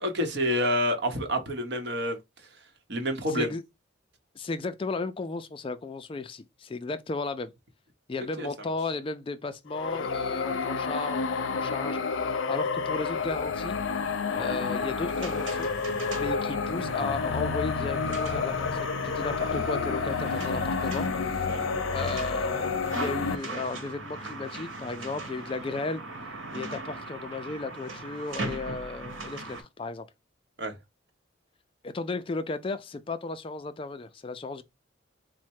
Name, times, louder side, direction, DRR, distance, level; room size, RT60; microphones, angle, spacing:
voice 1, 0.0-2.2 2.9-3.5 8.4-8.5 21.5-21.6 30.6-30.7, equal, 55° right, 0.9 m, -28 dB
voice 2, 3.3-3.6 4.4-7.5 8.1-13.8 14.3-15.7 16.1-21.5 21.9-26.0 26.5-30.1 31.8-34.6, left 3 dB, 25° left, 0.3 m, -35 dB
sound 1, 9.7-23.4, left 5 dB, 80° left, 0.5 m, -30 dB
sound 2, 14.3-29.6, right 2 dB, 85° right, 1.3 m, -39 dB
4.2 x 2.1 x 4.5 m
head